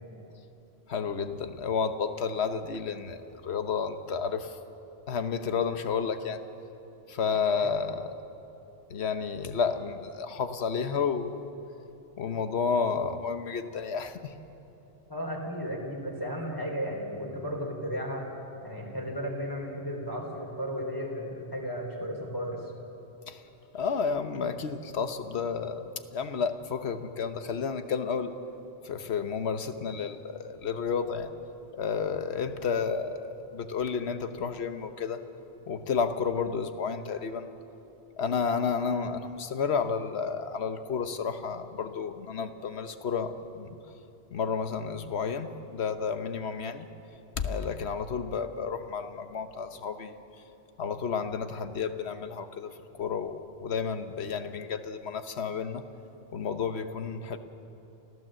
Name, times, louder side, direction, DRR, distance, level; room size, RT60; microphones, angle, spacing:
voice 1, 0.9-4.6 5.1-6.4 7.1-8.1 8.9-11.4 12.2-14.3 23.3-23.4 23.7-28.3 28.8-31.3 31.7-35.2 35.7-37.5 38.2-43.8 44.3-46.9 47.4-50.2 50.8-55.8 56.3-57.4, left 6 dB, 85° left, 9 dB, 1.2 m, -31 dB
voice 2, 15.1-18.3 18.6-22.7, equal, 20° left, -1 dB, 3.5 m, -34 dB
29.0 x 14.0 x 7.6 m, 2.9 s
omnidirectional pair, 1.1 m